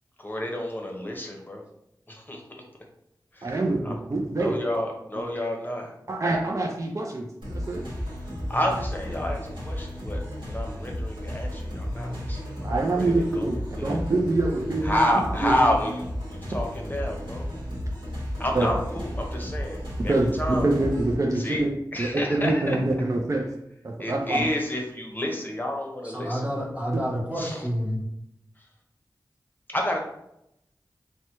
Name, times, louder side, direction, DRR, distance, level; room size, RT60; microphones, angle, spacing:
voice 1, 0.2-1.6 2.1-2.4 3.3-3.5 3.8-4.0 4.4-5.9 8.5-14.0 14.8-17.5 18.4-20.7 21.4-22.8 24.0-26.7 27.4-27.7 28.6-28.7 29.7-30.0, left 1 dB, 25° left, 1 dB, 0.7 m, -30 dB
voice 2, 3.4-4.6 6.1-7.9 12.6-15.0 15.4-15.5 18.5-18.7 20.1-21.7 22.0-23.4 23.8-24.5, right 2 dB, 45° right, 0 dB, 0.4 m, -25 dB
sound 1, 7.4-21.1, equal, 90° right, 1.0 m, -33 dB
voice 3, 26.0-28.0, equal, 15° right, -3 dB, 0.8 m, -29 dB
3.2 x 2.1 x 2.9 m, 0.81 s
cardioid pair, 40°, 8 cm